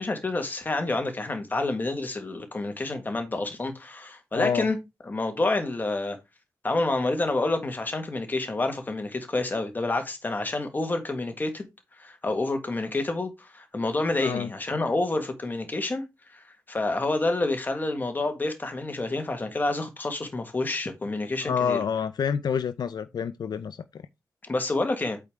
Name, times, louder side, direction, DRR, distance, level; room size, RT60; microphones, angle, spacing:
voice 1, 0.0-4.8 5.0-6.2 6.6-11.7 12.0-16.0 16.3-21.8 24.5-25.2, left 2 dB, 25° left, 1.6 m, -28 dB
voice 2, 4.3-4.7 14.2-14.5 21.4-24.0, left 7 dB, 75° left, 0.5 m, -28 dB
8.2 x 4.9 x 3.6 m
wide cardioid pair, 175°, 7 cm